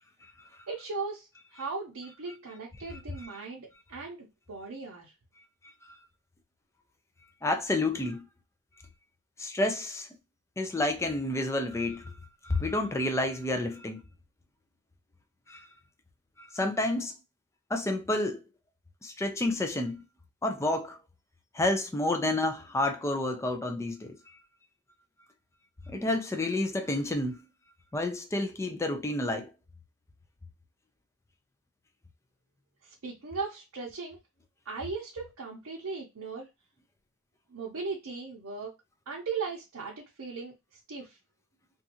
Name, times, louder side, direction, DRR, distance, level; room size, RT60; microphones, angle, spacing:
voice 1, 0.7-5.1 32.8-34.2 34.7-36.5 37.5-38.7 39.1-41.2, right 4 dB, 65° right, 0.6 m, -38 dB
voice 2, 2.8-3.3 5.8-6.0 7.4-8.2 9.4-10.1 10.6-12.1 12.4-14.0 15.5-15.7 16.4-17.1 17.7-18.4 19.0-20.0 20.4-21.0 21.5-24.3 25.9-27.4 27.9-29.5, left 2 dB, 15° left, 0.3 m, -30 dB
2.6 x 2.3 x 2.7 m
head